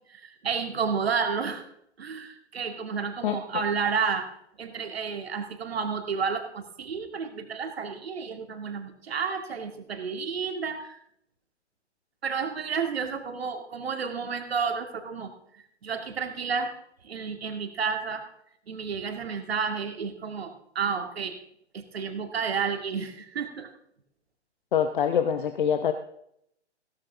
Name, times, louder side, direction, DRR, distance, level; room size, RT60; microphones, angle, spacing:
voice 1, 0.1-1.6 2.0-4.3 4.6-11.0 12.2-16.7 17.0-18.2 18.7-21.4 21.7-23.7, right 6 dB, 60° right, 6 dB, 2.1 m, -31 dB
voice 2, 24.7-25.9, left 8 dB, 45° left, 9 dB, 0.9 m, -24 dB
16.0 x 13.0 x 3.6 m, 0.72 s
figure-of-eight pair, 125°, 35 cm